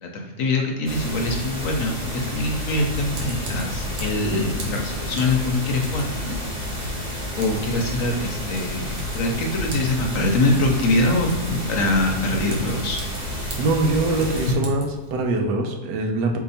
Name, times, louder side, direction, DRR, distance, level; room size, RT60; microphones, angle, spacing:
voice 1, 0.0-6.4 7.4-13.1, left 2 dB, 65° left, 2 dB, 0.9 m, -24 dB
sound 1, 0.9-14.5, left 1 dB, 25° right, 1.3 m, -30 dB
Typing, 2.9-15.3, equal, 70° right, 1.5 m, -37 dB
voice 2, 13.6-16.4, right 2 dB, 90° right, 3 dB, 1.3 m, -23 dB
4.4 x 2.8 x 4.1 m, 1.1 s
omnidirectional pair, 1.8 m